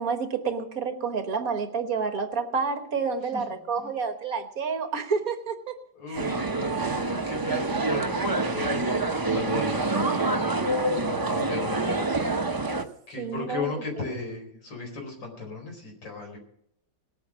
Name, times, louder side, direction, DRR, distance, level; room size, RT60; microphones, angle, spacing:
voice 1, 0.0-5.7 6.1-6.3 7.5-7.8 13.2-13.7, right 5 dB, 55° right, 7 dB, 1.6 m, -29 dB
voice 2, 3.3-3.9 5.9-8.9 9.3-12.2 13.1-16.4, left 4 dB, 90° left, 2 dB, 5.2 m, -37 dB
sound 1, 6.1-12.8, right 2 dB, 35° right, 0.3 m, -26 dB
19.5 x 8.5 x 6.2 m, 0.70 s
omnidirectional pair, 1.9 m